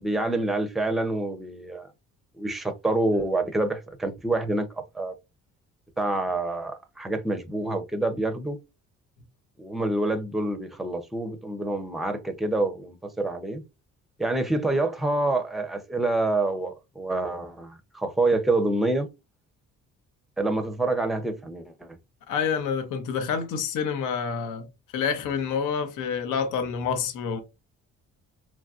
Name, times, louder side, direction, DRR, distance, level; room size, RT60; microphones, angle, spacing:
voice 1, 0.0-1.9 2.4-5.1 6.0-8.6 9.6-13.6 14.2-19.1 20.4-21.9, right 2 dB, ahead, 0.5 m, -27 dB
voice 2, 22.3-24.7 24.9-27.4, left 6 dB, 90° left, 0.7 m, -28 dB
2.9 x 2.5 x 2.3 m
cardioid pair, 90°, 30 cm